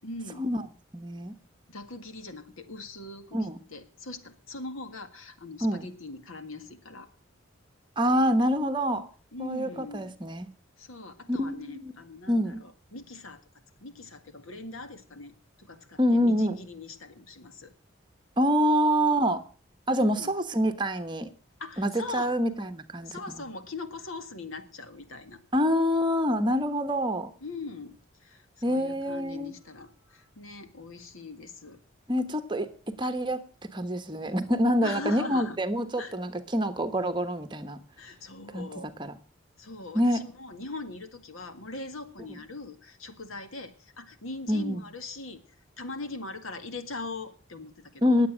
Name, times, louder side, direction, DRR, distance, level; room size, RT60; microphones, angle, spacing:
voice 1, 0.0-0.5 1.7-7.1 9.3-10.1 10.8-13.4 13.8-17.7 19.9-20.3 21.6-22.4 23.0-25.4 27.4-31.8 34.8-35.6 36.0-36.2 38.0-38.9 39.6-45.4 45.8-48.2, left 3 dB, 85° left, 9 dB, 1.9 m, -41 dB
voice 2, 0.9-1.3 3.3-3.6 5.6-5.9 8.0-9.1 9.4-10.5 11.3-11.9 12.3-12.6 16.0-16.6 18.4-19.4 19.9-21.3 21.8-23.4 25.5-27.3 28.6-29.5 32.1-33.4 33.7-37.8 38.5-38.7 39.0-39.1 39.9-40.2 44.5-44.8 48.0-48.3, equal, 20° right, 8 dB, 1.2 m, -26 dB
20.0 x 8.1 x 6.3 m, 0.40 s
head